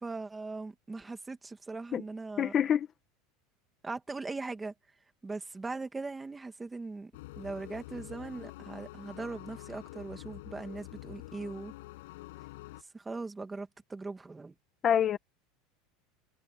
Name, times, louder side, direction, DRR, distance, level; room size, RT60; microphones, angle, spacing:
voice 1, 0.0-2.7 3.8-4.7 5.2-11.7 12.9-14.5, right 3 dB, 10° right, 2.2 m, -40 dB
voice 2, 2.4-2.9 14.8-15.2, left 9 dB, 30° left, 1.2 m, -26 dB
sound 1, 7.1-12.8, left 19 dB, 85° left, 6.9 m, -47 dB
supercardioid pair, 160°, 0 cm